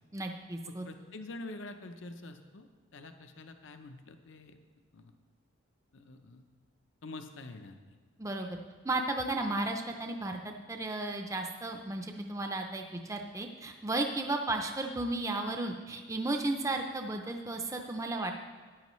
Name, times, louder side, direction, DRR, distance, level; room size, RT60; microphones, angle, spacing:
voice 1, 0.1-0.9 8.2-8.6 8.8-10.4 10.7-18.3, right 2 dB, 15° right, 4 dB, 0.5 m, -34 dB
voice 2, 0.7-2.7 2.9-4.6 4.9-5.1 5.9-6.4 7.0-8.0, left 2 dB, 65° left, 7 dB, 0.7 m, -46 dB
13.5 x 9.8 x 3.1 m, 1.5 s
head